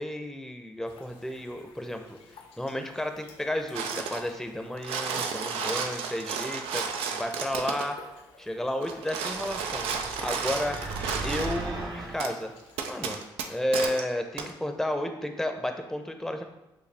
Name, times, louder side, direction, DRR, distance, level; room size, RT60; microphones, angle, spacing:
voice 1, 0.0-2.2 2.6-8.0 8.4-9.9 10.2-10.8 11.2-12.5 12.9-13.2 13.5-16.4, left 1 dB, 5° left, 5 dB, 0.6 m, -32 dB
sound 1, 0.8-13.3, left 4 dB, 75° left, 0.7 m, -53 dB
sound 2, 3.7-4.3 4.7-7.9 8.8-11.6 12.2-12.3 12.8-14.0 14.4-14.5, right 6 dB, 80° right, 0.4 m, -33 dB
sound 3, 9.3-12.2, right 2 dB, 45° right, 0.9 m, -37 dB
6.7 x 2.3 x 3.4 m, 0.97 s
supercardioid pair, 55°, 10 cm